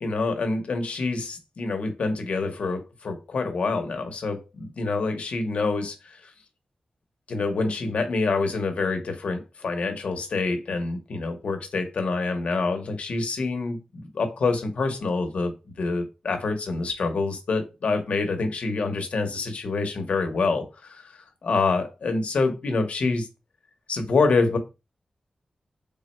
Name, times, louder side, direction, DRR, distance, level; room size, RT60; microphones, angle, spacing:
voice 1, 0.0-6.3 7.3-23.3 23.9-24.6, left 3 dB, 70° left, 0.8 m, -26 dB
3.4 x 2.1 x 4.2 m
wide cardioid pair, 160°, 2 cm